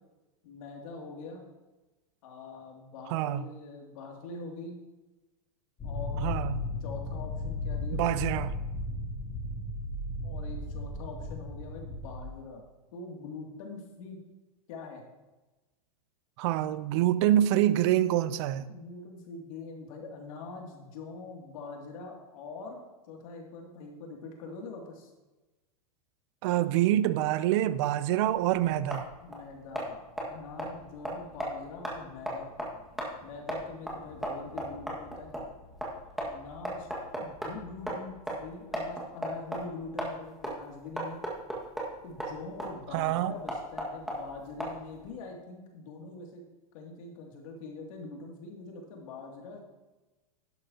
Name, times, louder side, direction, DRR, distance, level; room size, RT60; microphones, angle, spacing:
voice 1, 0.4-1.4 2.2-4.8 5.8-6.3 6.8-8.4 10.2-12.6 12.9-14.2 14.7-15.0 18.7-22.8 23.1-25.1 29.2-32.5 33.2-35.3 36.2-36.9 37.2-41.2 42.0-46.4 46.7-49.6, left 3 dB, 60° left, 2.7 m, -43 dB
voice 2, 3.1-3.4 6.2-6.6 7.9-8.5 16.4-18.7 26.4-29.1 42.9-43.3, right 13 dB, 45° right, 0.6 m, -26 dB
sound 1, 5.8-12.2, left 2 dB, 20° left, 3.1 m, -35 dB
sound 2, 28.3-45.1, equal, ahead, 1.9 m, -38 dB
11.5 x 11.0 x 2.9 m
supercardioid pair, 150°, 20 cm